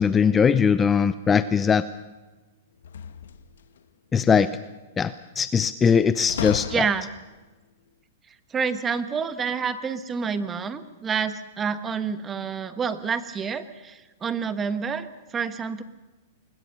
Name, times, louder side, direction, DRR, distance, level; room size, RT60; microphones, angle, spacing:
voice 1, 0.0-1.8 4.1-4.5 5.0-6.7, left 6 dB, 15° left, 14 dB, 0.6 m, -20 dB
sound 1, 2.8-3.8 6.3-7.3, left 8 dB, 80° left, 1.1 m, -34 dB
voice 2, 6.7-7.0 8.5-15.1 15.3-15.8, right 6 dB, 20° right, 11 dB, 1.3 m, -28 dB
21.5 x 20.5 x 6.6 m, 1.2 s
hypercardioid pair, 130°, 0 cm